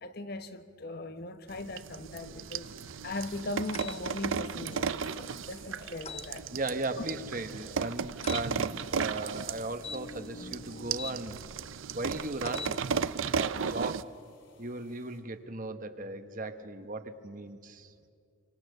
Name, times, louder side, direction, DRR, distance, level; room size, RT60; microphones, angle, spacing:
voice 1, 0.0-6.5, left 2 dB, 50° left, 1.0 m, -39 dB
sound 1, 1.5-14.0, right 6 dB, 80° right, 0.6 m, -35 dB
sound 2, 2.5-2.6 3.0-3.5 4.2-4.3 4.7-6.8 7.3-10.9 11.8-15.2, left 2 dB, 65° left, 4.4 m, -58 dB
sound 3, 3.7-4.0 6.1-6.3 8.2-8.5 9.8-11.2 12.4-12.8, left 5 dB, 30° left, 0.7 m, -42 dB
voice 2, 6.5-11.4 11.9-12.8 13.3-14.1 14.6-18.1, right 2 dB, 40° right, 1.2 m, -37 dB
28.5 x 25.0 x 6.7 m
head